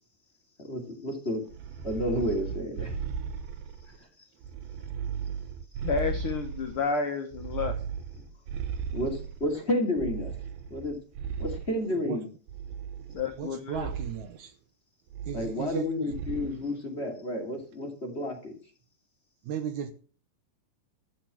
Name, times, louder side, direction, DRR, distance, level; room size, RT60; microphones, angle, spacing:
voice 1, 0.6-1.4 1.8-3.0 3.9-4.1 8.9-10.3 10.7-11.0 11.4-12.3 15.3-18.5, left 1 dB, 20° left, 2.3 m, -31 dB
sound 1, 1.5-3.9 4.4-6.9 7.3-9.5 10.0-11.8 12.5-13.4 13.7-14.2 15.1-15.8 16.1-16.6, right 7 dB, 85° right, 2.9 m, -36 dB
voice 2, 5.8-7.7 13.1-13.9, left 5 dB, 65° left, 1.4 m, -30 dB
voice 3, 13.4-14.5 15.3-16.1 19.4-19.9, right 9 dB, 70° right, 2.2 m, -35 dB
14.0 x 6.0 x 7.5 m
omnidirectional pair, 4.2 m